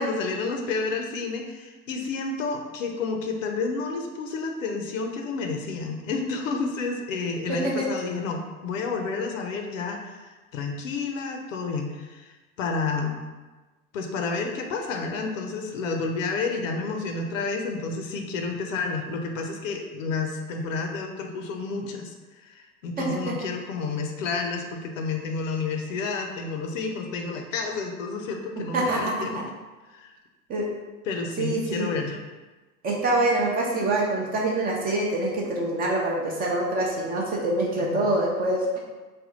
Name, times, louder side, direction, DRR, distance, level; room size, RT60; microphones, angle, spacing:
voice 1, 0.0-13.2 13.9-29.4 29.9-30.1 31.1-32.2 37.6-38.1, left 4 dB, 60° left, 3 dB, 0.6 m, -30 dB
voice 2, 7.5-7.9 23.0-23.4 28.7-29.4 30.5-30.7 31.4-31.9 32.8-38.8, right 1 dB, 20° right, -2 dB, 0.5 m, -25 dB
3.5 x 2.3 x 3.8 m, 1.2 s
figure-of-eight pair, 90°, 44 cm